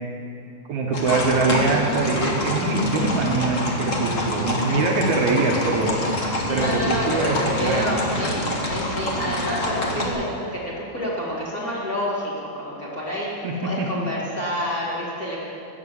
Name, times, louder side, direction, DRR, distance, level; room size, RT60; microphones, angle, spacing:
voice 1, 0.7-6.0 6.5-8.0 13.4-13.9, right 3 dB, 65° right, 0 dB, 2.2 m, -23 dB
sound 1, 0.9-10.1, left 1 dB, 45° left, 0.9 m, -26 dB
voice 2, 6.5-8.4 8.7-13.3 13.6-15.5, equal, 30° left, -7 dB, 2.1 m, -28 dB
14.0 x 9.3 x 7.6 m, 2.6 s
omnidirectional pair, 4.0 m